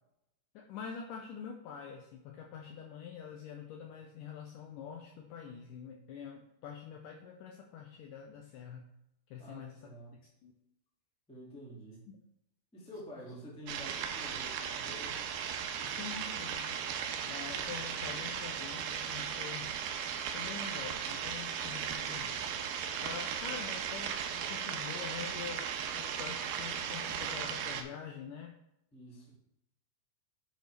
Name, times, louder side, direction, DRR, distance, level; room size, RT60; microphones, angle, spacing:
voice 1, 0.5-8.8 9.3-10.5 12.1-12.2 15.8-16.9 17.3-19.7 20.3-22.4 23.0-28.5, left 7 dB, 85° left, 2 dB, 1.9 m, -46 dB
voice 2, 9.4-10.1 11.3-12.1 12.7-15.3 28.9-29.3, equal, 5° left, -4 dB, 0.6 m, -49 dB
sound 1, 13.7-27.8, right 8 dB, 85° right, 2.6 m, -37 dB
10.5 x 5.1 x 3.3 m, 0.81 s
omnidirectional pair, 4.5 m